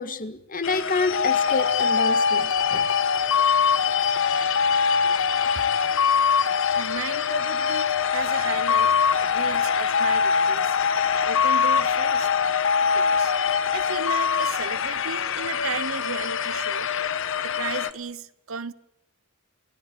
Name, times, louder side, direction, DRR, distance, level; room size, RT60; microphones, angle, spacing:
voice 1, 0.0-2.9, left 3 dB, 40° left, 1.8 m, -28 dB
sound 1, 0.6-17.9, left 8 dB, 65° left, 1.3 m, -28 dB
sound 2, 1.1-15.6, left 6 dB, 85° left, 1.3 m, -23 dB
voice 2, 6.7-8.9 9.2-10.8 11.2-12.3 12.9-13.3 13.7-16.9 17.4-18.7, right 5 dB, 70° right, 1.1 m, -34 dB
29.0 x 18.0 x 8.3 m
head